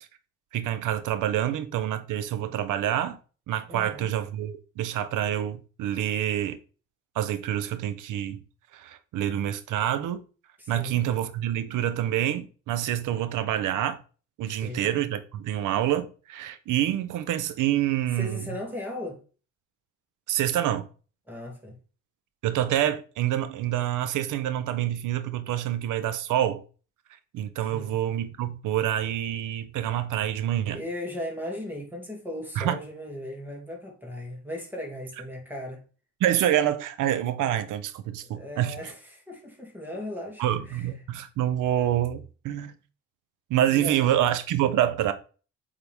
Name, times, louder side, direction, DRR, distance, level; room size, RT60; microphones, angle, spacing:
voice 1, 0.5-3.2 3.5-6.6 7.2-8.4 8.7-10.2 10.7-14.0 14.4-18.5 20.3-20.9 22.4-26.6 27.3-30.8 32.6-32.8 36.2-38.8 40.4-42.7 43.5-45.1, right 11 dB, 85° right, 0.9 m, -27 dB
voice 2, 3.7-4.1 10.6-11.0 14.5-14.9 18.1-19.2 21.3-21.8 27.6-28.0 30.7-35.8 38.3-40.8 43.7-44.0, left 1 dB, 5° right, 2.7 m, -37 dB
8.2 x 3.9 x 3.6 m
cardioid pair, 90°, 30 cm